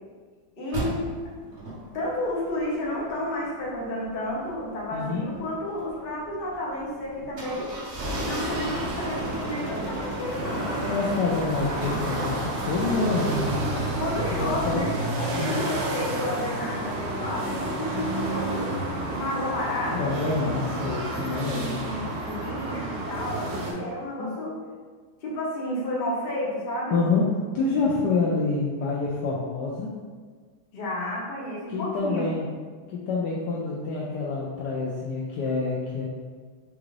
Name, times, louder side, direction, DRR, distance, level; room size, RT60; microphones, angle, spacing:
voice 1, 0.5-1.1 1.9-7.7 8.2-10.7 13.9-18.8 19.1-20.1 20.4-20.6 21.5-24.6 25.2-27.0 30.7-32.3, left 1 dB, 45° left, -5 dB, 0.7 m, -31 dB
sound 1, 0.7-14.8, right 1 dB, 50° right, 1.2 m, -35 dB
voice 2, 4.9-5.3 10.9-13.3 14.3-14.9 15.3-15.5 19.1-19.2 19.9-21.7 24.2-24.3 26.9-27.2 27.5-29.9 31.7-32.4 32.9-36.1, left 4 dB, 75° left, -4 dB, 1.0 m, -27 dB
sound 2, 8.0-23.7, right 2 dB, 75° right, 1.4 m, -31 dB
4.7 x 2.5 x 3.1 m, 1.5 s
omnidirectional pair, 2.2 m